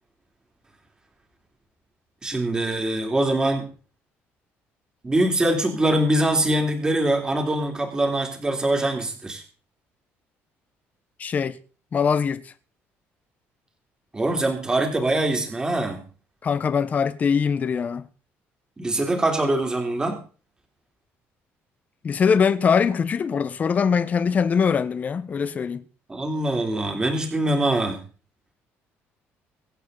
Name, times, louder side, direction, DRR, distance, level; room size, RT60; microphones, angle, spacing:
voice 1, 2.2-3.6 5.0-9.4 14.1-16.0 18.8-20.2 26.1-28.0, right 1 dB, 15° right, 3.4 m, -23 dB
voice 2, 11.2-11.6 11.9-12.5 16.4-18.1 22.0-25.8, left 6 dB, 35° left, 1.2 m, -22 dB
24.5 x 8.4 x 4.1 m
cardioid pair, 135°, 5 cm